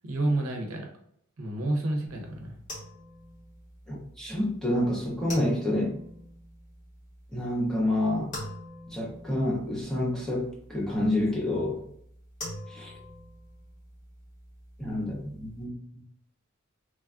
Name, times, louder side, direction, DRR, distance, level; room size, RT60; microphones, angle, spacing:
voice 1, 0.0-0.9 1.4-2.5, right 2 dB, 75° right, 2 dB, 0.6 m, -29 dB
sound 1, 2.1-15.6, left 1 dB, 35° left, 1.3 m, -46 dB
voice 2, 3.9-6.0 7.3-8.4 8.9-11.8 12.7-12.9 14.8-15.8, left 1 dB, 5° left, -4 dB, 0.7 m, -28 dB
3.2 x 2.3 x 2.3 m, 0.68 s
head